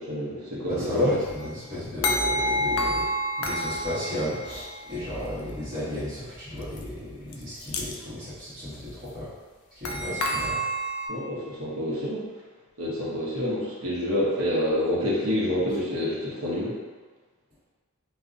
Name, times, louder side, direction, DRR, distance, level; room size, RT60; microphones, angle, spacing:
voice 1, 0.0-1.1 10.1-10.2 11.1-12.3 12.8-16.8, left 1 dB, 70° right, -6 dB, 0.7 m, -27 dB
voice 2, 0.7-3.1 3.4-9.3 9.7-10.6, left 1 dB, 40° right, -14 dB, 1.1 m, -34 dB
sound 1, 1.1-1.4 2.0-5.0 6.8-6.9 7.3-7.4 7.6-7.9 9.8-11.1, equal, 70° left, 0.3 m, -28 dB
2.5 x 2.0 x 2.5 m, 1.4 s
head